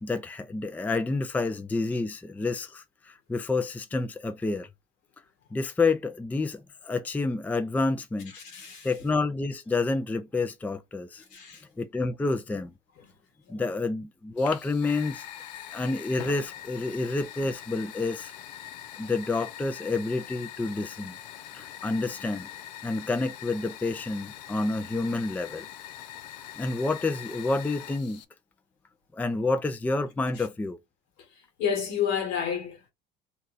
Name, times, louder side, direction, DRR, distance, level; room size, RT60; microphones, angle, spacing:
voice 1, 0.0-4.7 5.5-8.3 8.8-11.2 11.8-12.7 13.5-15.3 15.7-18.3 19.0-21.2 21.5-22.5 22.8-25.7 26.6-28.2 29.1-30.8, left 3 dB, 10° left, 0.4 m, -29 dB
voice 2, 8.3-8.9 11.3-11.6 13.0-13.1 13.4-13.7 30.3-30.4 31.2-32.9, left 8 dB, 70° left, 1.5 m, -31 dB
Fire, 14.4-28.2, left 12 dB, 90° left, 0.4 m, -43 dB
2.8 x 2.2 x 3.9 m
supercardioid pair, 90°, 21 cm